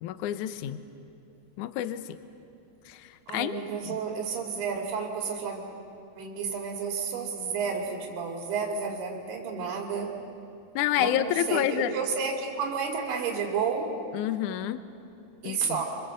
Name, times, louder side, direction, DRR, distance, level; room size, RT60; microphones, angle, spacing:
voice 1, 0.0-0.8 1.6-2.0 2.9-3.6 3.8-4.0 10.8-11.9 14.1-14.8 15.4-15.8, left 12 dB, 80° left, 11 dB, 1.8 m, -29 dB
voice 2, 3.3-5.6 6.2-10.2 11.0-14.0 15.4-15.9, right 6 dB, 80° right, 1 dB, 4.4 m, -31 dB
27.0 x 26.5 x 7.7 m, 2.6 s
omnidirectional pair, 4.6 m